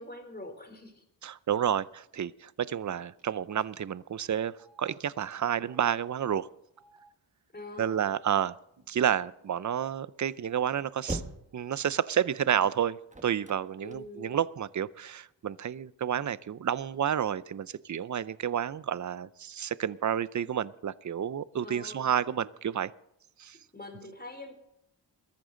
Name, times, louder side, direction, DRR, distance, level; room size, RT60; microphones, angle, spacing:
voice 1, 0.0-1.0 7.5-8.1 13.8-14.4 18.5-18.6 21.6-22.1 23.7-24.5, left 1 dB, 20° left, 5 dB, 3.3 m, -44 dB
voice 2, 1.2-4.5 4.8-6.5 7.8-8.5 8.9-11.2 11.5-13.0 13.2-22.9 23.4-23.6, right 9 dB, 40° right, 18 dB, 0.6 m, -30 dB
Telephone, 1.8-1.9 2.1-2.3 3.2-3.3 3.6-3.7 4.5-4.8 5.5-5.9 6.6-7.0 7.6-7.9 8.7-8.8 9.1-9.8, right 3 dB, 90° right, 6.6 m, -62 dB
sound 1, 10.9-14.6 15.1-16.1, right 2 dB, 15° right, 1.4 m, -41 dB
21.0 x 14.0 x 3.9 m, 0.78 s
wide cardioid pair, 100°, 45 cm